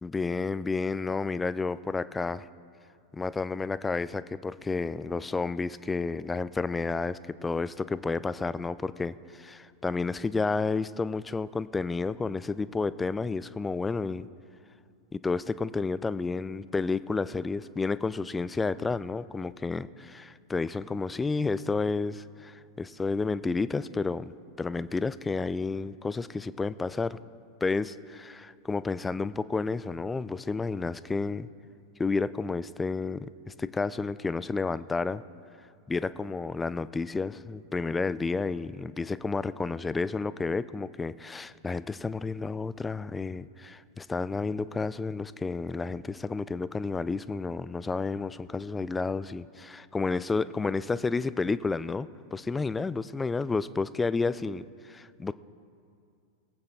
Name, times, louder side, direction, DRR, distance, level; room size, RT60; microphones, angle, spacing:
voice 1, 0.0-2.5 3.1-14.3 15.1-27.2 27.6-31.5 32.0-35.2 35.9-55.3, left 4 dB, 10° left, 16 dB, 0.3 m, -31 dB
21.0 x 8.7 x 3.6 m, 2.4 s
figure-of-eight pair, 90°, 0 cm